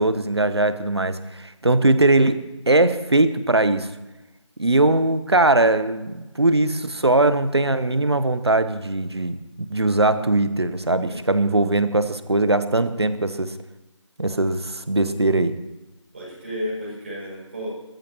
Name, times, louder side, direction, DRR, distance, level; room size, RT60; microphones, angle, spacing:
voice 1, 0.0-3.9 4.6-9.4 9.7-13.5 14.2-15.5, right 2 dB, 55° right, 12 dB, 1.0 m, -20 dB
voice 2, 10.9-11.4 16.1-17.7, equal, 25° right, -7 dB, 6.5 m, -33 dB
28.0 x 14.5 x 3.0 m, 1.0 s
figure-of-eight pair, 170°, 16 cm